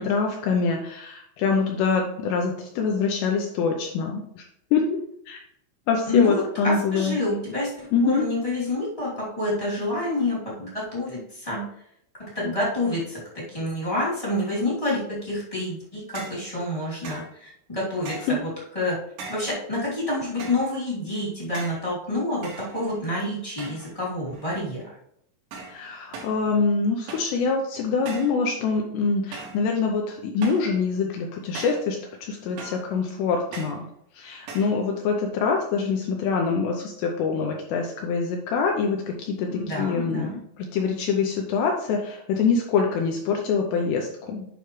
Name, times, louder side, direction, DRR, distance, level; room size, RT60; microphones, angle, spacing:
voice 1, 0.0-4.4 4.7-4.8 5.3-5.4 5.9-7.2 7.9-8.3 18.3-18.4 25.7-33.8 34.1-40.3 40.6-44.5, left 5 dB, 80° left, 2 dB, 2.6 m, -25 dB
voice 2, 6.1-7.7 8.0-11.6 12.2-18.5 18.7-19.0 19.3-24.8 39.5-40.4, left 2 dB, 15° left, -7 dB, 1.3 m, -28 dB
sound 1, 16.2-16.5 17.0-17.3 18.1-18.4 19.2-19.6 20.4-20.7 21.5-21.9 22.4-23.1 23.6-24.0 24.3-24.7 25.5-25.8 26.1-26.4 27.1-27.4 28.1-28.4 29.3-29.6 30.4-30.7 31.6-31.9 32.6-32.9 33.5-33.8 34.5-34.8, right 4 dB, 70° right, 3.6 m, -39 dB
9.2 x 5.5 x 3.1 m, 0.73 s
omnidirectional pair, 5.5 m